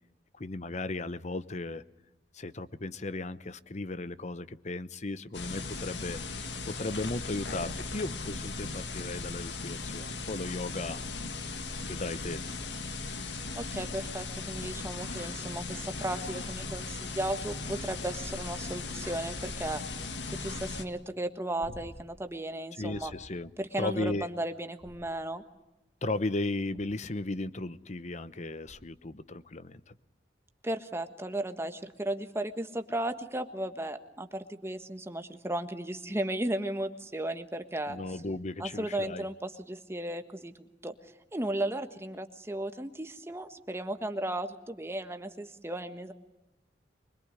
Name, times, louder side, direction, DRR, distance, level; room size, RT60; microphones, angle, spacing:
voice 1, 0.4-1.8 2.3-6.2 6.7-11.0 11.8-12.4 22.8-23.5 23.8-24.3 26.0-29.9 37.9-39.3, left 2 dB, 40° left, 15 dB, 0.9 m, -36 dB
sound 1, 5.3-20.8, left 3 dB, 80° left, 1.8 m, -38 dB
voice 2, 13.5-19.8 20.3-23.1 23.6-25.4 30.6-38.0 38.6-40.9 41.3-46.1, right 1 dB, 15° right, 8 dB, 1.4 m, -35 dB
sound 2, 21.6-22.3 22.9-23.4 24.8-25.5 26.7-27.2 28.6-29.1 31.5-31.6, equal, 60° right, 2.1 m, -51 dB
24.5 x 22.0 x 9.8 m, 0.95 s
head